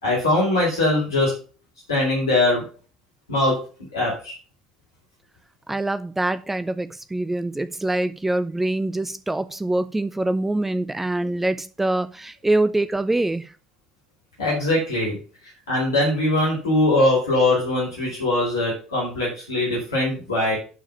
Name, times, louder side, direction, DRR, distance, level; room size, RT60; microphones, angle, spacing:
voice 1, 0.0-1.4 1.9-2.7 3.3-3.7 3.9-4.3 14.4-15.2 15.7-20.6, left 2 dB, 80° left, 4.2 m, -21 dB
voice 2, 5.7-13.5, right 2 dB, 10° right, 0.7 m, -24 dB
11.0 x 4.9 x 5.6 m
figure-of-eight pair, 60°, 2 cm